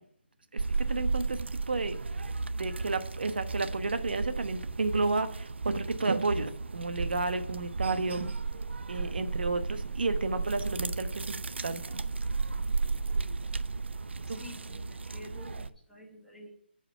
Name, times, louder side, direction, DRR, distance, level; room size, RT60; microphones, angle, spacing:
voice 1, 0.5-2.0 2.6-8.3 8.9-11.3 11.6-12.0 14.3-14.4, right 3 dB, 60° right, 9 dB, 1.0 m, -32 dB
sound 1, 0.6-15.7, right 4 dB, 80° right, 0.6 m, -34 dB
voice 2, 14.3-14.9 15.1-16.5, left 2 dB, ahead, -5 dB, 1.1 m, -49 dB
10.0 x 4.9 x 6.9 m, 0.64 s
hypercardioid pair, 180°, 6 cm